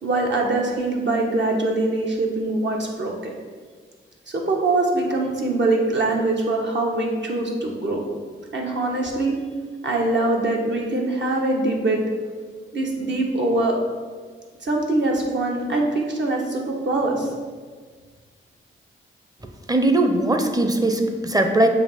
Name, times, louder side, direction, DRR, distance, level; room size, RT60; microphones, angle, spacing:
voice 1, 0.0-3.3 4.3-8.0 8.5-9.4 9.8-12.0 12.7-13.8 14.6-17.3, right 2 dB, 60° right, -1 dB, 1.3 m, -23 dB
voice 2, 19.7-21.7, right 2 dB, 15° right, 6 dB, 0.7 m, -19 dB
7.0 x 2.9 x 5.6 m, 1.6 s
cardioid pair, 70°, 21 cm